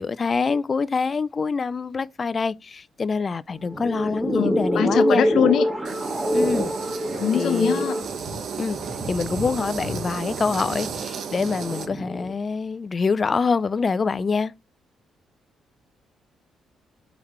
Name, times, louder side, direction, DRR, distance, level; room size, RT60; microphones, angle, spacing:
voice 1, 0.0-5.3 6.3-6.7 7.3-7.9 8.6-8.8 9.1-14.5, left 4 dB, 35° left, 0.3 m, -25 dB
sound 1, 3.5-12.3, equal, 20° right, 1.6 m, -26 dB
voice 2, 4.3-5.7 7.2-8.0, left 9 dB, 75° left, 0.7 m, -23 dB
sound 2, 5.8-11.9, right 6 dB, 70° right, 0.9 m, -33 dB
4.5 x 3.9 x 3.0 m
cardioid pair, 90°, 0 cm